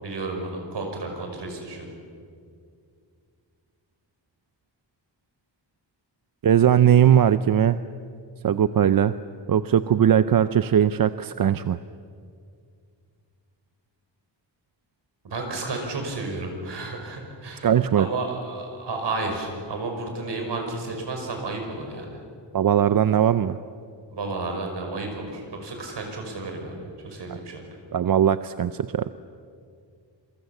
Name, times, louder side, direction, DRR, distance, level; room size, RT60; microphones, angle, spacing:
voice 1, 0.0-1.9 15.2-17.7 18.0-22.2 24.1-27.6, right 3 dB, 65° right, 3 dB, 5.7 m, -32 dB
voice 2, 6.4-7.8 8.4-9.1 9.5-11.8 17.6-18.1 22.5-23.6 27.9-29.1, right 9 dB, 50° right, 13 dB, 0.6 m, -19 dB
27.5 x 24.0 x 7.2 m, 2.2 s
wide cardioid pair, 180°, 44 cm